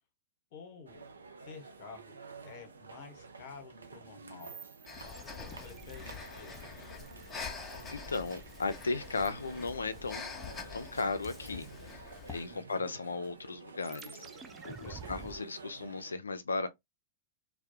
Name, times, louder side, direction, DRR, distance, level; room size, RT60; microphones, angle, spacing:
voice 1, 0.5-1.0 1.4-4.6 5.0-6.8 12.5-12.9 14.7-15.0, left 5 dB, 55° left, 0.9 m, -51 dB
sound 1, 0.9-16.1, right 4 dB, 85° right, 0.4 m, -50 dB
sound 2, 4.4-9.4 13.8-15.4, right 6 dB, 20° right, 0.3 m, -52 dB
Breathing, 4.9-12.5, left 5 dB, 20° left, 0.7 m, -45 dB
voice 2, 7.9-11.7 12.3-14.2 14.6-16.7, left 3 dB, 90° left, 0.4 m, -36 dB
2.2 x 2.1 x 2.7 m
hypercardioid pair, 105°, 0 cm